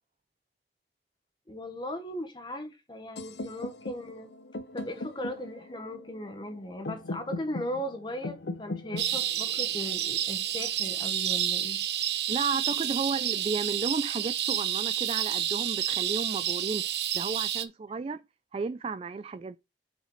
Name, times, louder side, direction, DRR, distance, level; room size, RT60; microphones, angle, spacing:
voice 1, 1.5-4.3 4.7-11.8, equal, 25° left, 1.0 m, -38 dB
sound 1, 3.2-11.1, left 2 dB, 75° left, 0.8 m, -40 dB
sound 2, 9.0-17.6, right 11 dB, 70° right, 0.8 m, -29 dB
voice 2, 12.3-18.2 18.5-19.6, right 4 dB, 35° right, 0.3 m, -33 dB
7.8 x 6.5 x 3.1 m
head